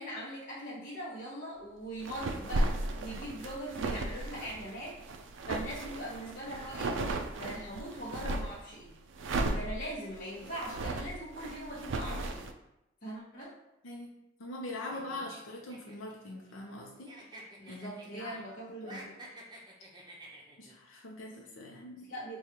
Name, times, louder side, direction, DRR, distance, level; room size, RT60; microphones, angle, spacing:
voice 1, 0.0-2.7 3.0-4.9 5.5-7.0 7.3-9.0 9.5-12.5 13.0-13.5 17.6-19.2 22.1-22.4, equal, 45° left, -8 dB, 0.9 m, -41 dB
sound 1, 2.0-8.6 9.1-12.5, right 2 dB, 65° right, 0.4 m, -35 dB
voice 2, 13.8-17.2 17.7-18.3 18.8-19.1 20.6-22.1, left 2 dB, 80° left, -2 dB, 0.6 m, -43 dB
sound 2, 14.9-16.8 17.1-18.5 18.8-20.7, right 1 dB, 20° right, 0.7 m, -50 dB
6.2 x 2.3 x 2.8 m, 0.89 s
head